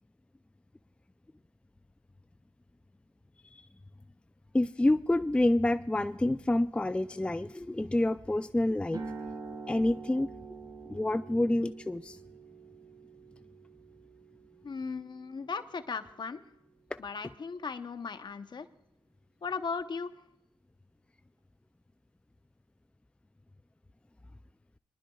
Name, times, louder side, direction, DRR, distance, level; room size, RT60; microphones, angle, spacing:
voice 1, 4.5-9.0 9.7-10.3 10.9-12.2 16.9-17.0, left 1 dB, 10° left, 12 dB, 0.4 m, -28 dB
sound 1, 8.9-16.9, right 4 dB, 45° right, 2.1 m, -46 dB
voice 2, 14.6-16.4 17.0-18.7 19.4-20.1, left 5 dB, 55° left, 9 dB, 0.9 m, -37 dB
24.0 x 11.5 x 2.3 m, 0.84 s
cardioid pair, 50°, 9 cm